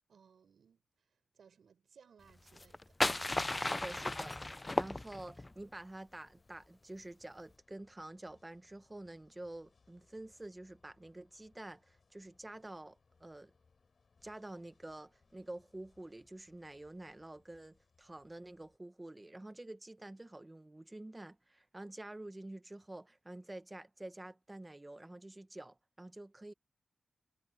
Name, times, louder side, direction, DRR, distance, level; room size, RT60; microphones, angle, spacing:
voice 1, 0.0-2.9, right 6 dB, 80° right, 5.9 m, -64 dB
sound 1, 2.5-5.5, left 2 dB, 20° left, 0.4 m, -35 dB
sound 2, 3.2-18.8, left 4 dB, 55° left, 7.4 m, -72 dB
voice 2, 3.6-13.5 14.2-26.5, right 1 dB, 20° right, 1.3 m, -49 dB
cardioid pair, 70°, 0 cm